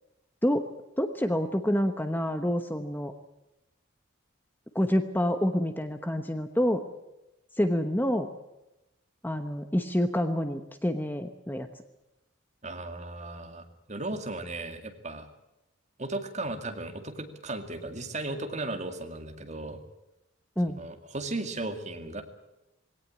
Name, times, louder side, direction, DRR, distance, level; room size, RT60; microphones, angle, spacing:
voice 1, 1.0-3.1 4.7-6.8 7.6-8.3 9.2-11.7 20.6-20.8, equal, 10° left, 7 dB, 1.0 m, -27 dB
voice 2, 12.6-13.6 13.9-15.3 16.0-19.8 20.8-22.2, right 2 dB, 35° right, 5 dB, 2.2 m, -36 dB
20.0 x 18.0 x 8.8 m, 0.95 s
head